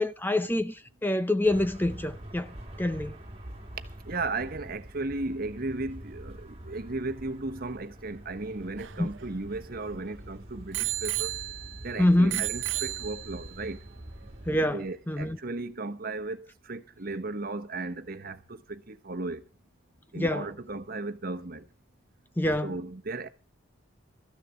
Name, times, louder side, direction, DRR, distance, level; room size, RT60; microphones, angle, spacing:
voice 1, 0.0-3.2 9.0-9.1 12.0-12.4 14.5-15.4 20.2-20.4 22.4-22.7, left 1 dB, 10° left, 0.6 m, -26 dB
sound 1, 1.4-14.6, right 1 dB, 30° right, 2.0 m, -45 dB
voice 2, 4.0-11.4 11.8-13.8 14.7-19.5 20.1-21.7 22.6-23.3, right 3 dB, 50° right, 1.2 m, -35 dB
Bicycle bell, 8.4-10.1 10.7-11.9 12.3-13.6 14.3-14.4, right 16 dB, 65° right, 0.7 m, -33 dB
13.5 x 6.6 x 8.3 m
head